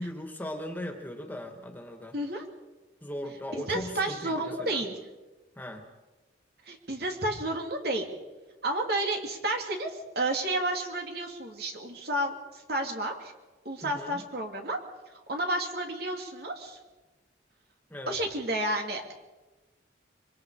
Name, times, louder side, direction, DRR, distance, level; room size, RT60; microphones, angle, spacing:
voice 1, 0.0-2.2 3.0-4.8 5.6-5.9 13.8-14.2 17.9-18.2, left 1 dB, 10° left, 3 dB, 2.4 m, -38 dB
voice 2, 2.1-2.5 3.5-5.0 6.7-8.1 8.6-12.3 12.7-13.3 13.6-14.8 15.3-16.8 18.1-19.1, right 1 dB, 60° right, 2 dB, 3.0 m, -31 dB
26.0 x 24.5 x 5.0 m, 1.2 s
head